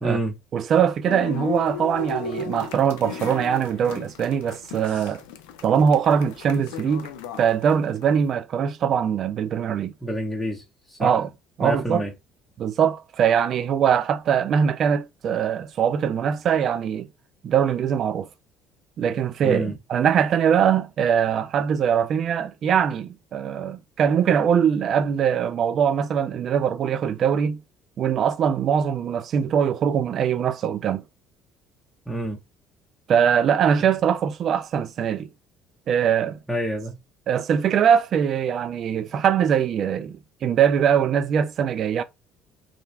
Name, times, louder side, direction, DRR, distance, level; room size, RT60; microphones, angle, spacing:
voice 1, 0.0-0.3 10.0-10.6 10.9-11.2 11.6-12.1 19.4-19.8 32.1-32.4 36.5-37.0, right 1 dB, 5° left, 0.8 m, -27 dB
voice 2, 0.5-5.2 5.6-7.1 7.4-9.9 11.0-11.3 11.6-12.0 12.6-17.1 17.4-18.3 19.0-27.6 28.0-31.0 33.1-35.3 35.9-36.4 37.3-42.0, right 8 dB, 55° right, 0.4 m, -22 dB
sound 1, 1.0-8.0, left 6 dB, 85° left, 0.4 m, -35 dB
2.5 x 2.2 x 3.3 m
supercardioid pair, 75°, 0 cm